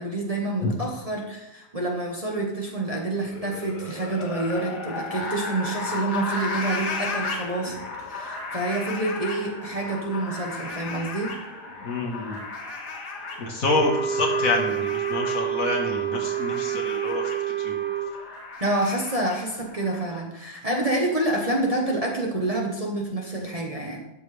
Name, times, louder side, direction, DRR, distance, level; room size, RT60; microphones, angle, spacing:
voice 1, 0.0-11.4 18.6-24.0, right 2 dB, 25° right, -1 dB, 1.2 m, -28 dB
sound 1, 3.2-20.2, left 3 dB, 85° left, 2.1 m, -35 dB
voice 2, 11.8-12.4 13.4-17.8, left 2 dB, 60° left, 1 dB, 1.9 m, -27 dB
Wind instrument woodwind instrument, 13.7-18.1, right 8 dB, 10° right, 0.8 m, -27 dB
12.5 x 7.5 x 3.4 m, 0.88 s
omnidirectional pair, 1.7 m